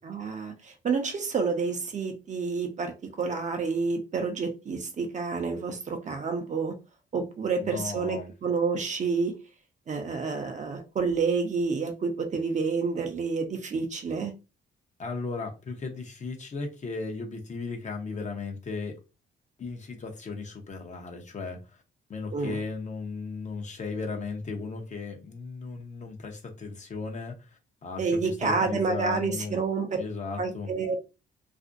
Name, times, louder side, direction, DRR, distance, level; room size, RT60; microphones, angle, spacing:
voice 1, 0.0-6.7 7.1-9.4 9.9-14.3 22.3-22.6 28.0-29.9 30.4-31.1, right 4 dB, 35° right, 0.6 m, -29 dB
voice 2, 7.6-8.3 15.0-18.9 19.6-21.8 22.1-29.6 30.0-30.7, left 4 dB, 35° left, 0.7 m, -36 dB
2.5 x 2.0 x 2.5 m
cardioid pair, 90°, 20 cm